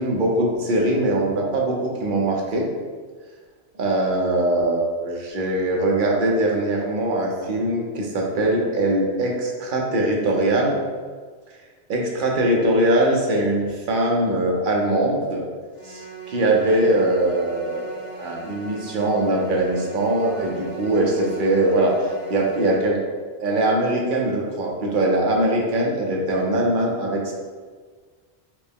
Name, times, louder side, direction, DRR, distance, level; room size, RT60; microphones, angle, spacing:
voice 1, 0.0-2.7 3.8-10.8 11.9-15.5 15.8-16.0 16.3-21.9 22.3-23.0 23.4-27.3, right 1 dB, 55° right, -1 dB, 0.7 m, -21 dB
sound 1, 15.7-22.8, right 3 dB, 40° left, 0.9 m, -39 dB
4.3 x 2.0 x 3.4 m, 1.5 s
omnidirectional pair, 1.2 m